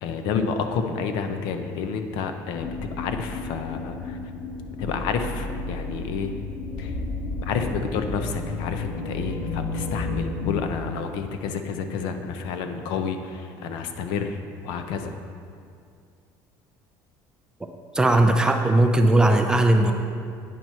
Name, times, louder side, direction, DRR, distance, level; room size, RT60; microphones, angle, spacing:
voice 1, 0.0-2.7 3.0-4.2 4.8-6.3 6.8-6.9 7.4-15.1, left 5 dB, 65° left, 7 dB, 0.6 m, -29 dB
sound 1, 2.5-10.6, left 3 dB, 30° left, 0.7 m, -32 dB
voice 2, 17.9-19.9, right 1 dB, 10° right, 4 dB, 0.4 m, -18 dB
9.0 x 4.6 x 5.5 m, 2.3 s
cardioid pair, 165°, 8 cm